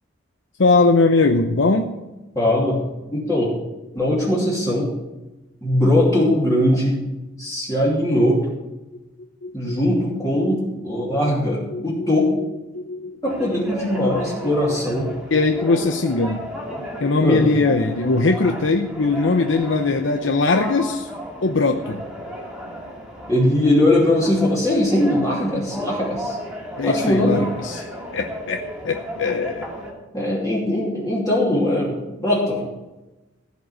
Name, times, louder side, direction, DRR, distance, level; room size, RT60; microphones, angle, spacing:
voice 1, 0.6-1.9 9.4-10.0 11.0-12.1 12.7-13.7 14.0-14.5 15.1-16.5 17.0-21.1 21.4-22.0 26.8-27.9 28.1-29.7, left 3 dB, 85° left, 5 dB, 0.8 m, -21 dB
voice 2, 2.3-2.8 3.1-3.5 3.9-4.9 5.6-7.0 7.4-8.4 9.5-12.3 13.2-15.1 16.7-16.8 17.2-17.4 23.3-26.4 26.8-27.4 30.1-32.7, left 1 dB, 20° left, -7 dB, 2.8 m, -20 dB
sound 1, 13.3-29.9, equal, 5° right, 2.3 m, -34 dB
15.5 x 5.2 x 9.3 m, 1.1 s
head